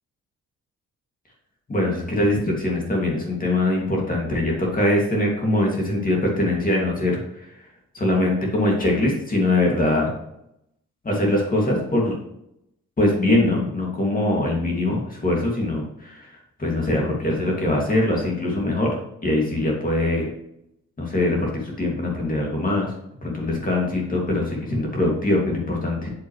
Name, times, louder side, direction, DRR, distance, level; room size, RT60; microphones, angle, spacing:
voice 1, 1.7-7.5 7.9-10.1 11.0-12.2 13.0-18.9 19.2-20.3 21.0-22.9 23.2-26.1, left 1 dB, 30° left, -2 dB, 2.3 m, -22 dB
8.1 x 6.7 x 3.2 m, 0.80 s
cardioid pair, 90°, 30 cm